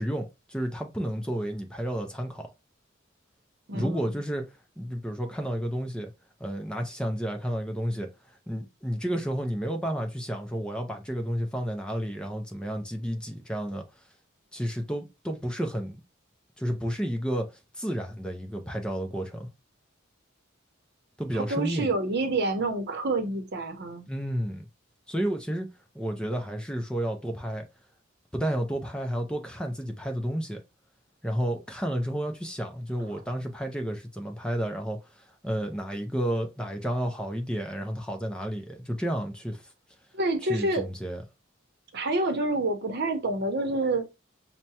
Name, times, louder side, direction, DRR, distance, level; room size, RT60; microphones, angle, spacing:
voice 1, 0.0-2.5 3.7-6.1 6.4-13.8 14.5-16.0 16.6-19.5 21.2-21.9 24.1-24.7 25.1-25.7 25.9-27.6 28.3-30.6 31.2-39.7 40.5-41.2, equal, 5° left, 0.5 m, -31 dB
voice 2, 3.7-4.2 21.3-24.0 40.1-40.8 41.9-44.2, right 2 dB, 55° right, 0.8 m, -28 dB
5.7 x 2.1 x 2.7 m
head